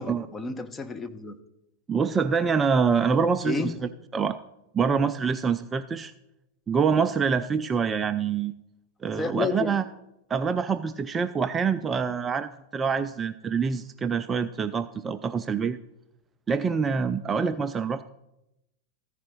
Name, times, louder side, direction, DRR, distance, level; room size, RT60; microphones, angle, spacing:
voice 1, 0.0-1.4 3.4-3.8 9.1-9.8, left 4 dB, 15° left, 7 dB, 0.8 m, -31 dB
voice 2, 1.9-3.7 4.1-4.4 4.7-6.1 6.7-8.5 9.0-9.8 10.3-15.8 16.5-18.0, right 6 dB, 20° right, 11 dB, 0.3 m, -25 dB
14.0 x 4.9 x 6.2 m, 0.89 s
figure-of-eight pair, 90°, 0 cm